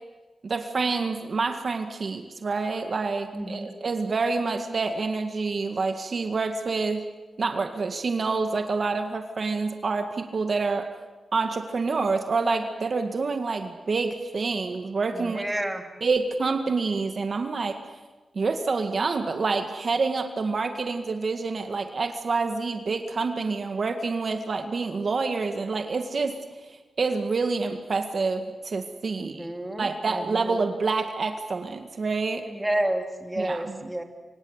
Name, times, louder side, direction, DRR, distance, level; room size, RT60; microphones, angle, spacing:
voice 1, 0.4-7.0 7.4-10.9 11.3-15.4 16.0-17.8 18.4-26.4 26.7-29.5 29.8-32.5 33.4-33.7, right 4 dB, 55° right, 6 dB, 1.9 m, -27 dB
voice 2, 3.3-3.7 15.1-15.8 29.1-30.6 32.5-34.0, right 1 dB, 10° right, 4 dB, 3.1 m, -30 dB
26.0 x 26.0 x 8.1 m, 1.2 s
cardioid pair, 75°, 0 cm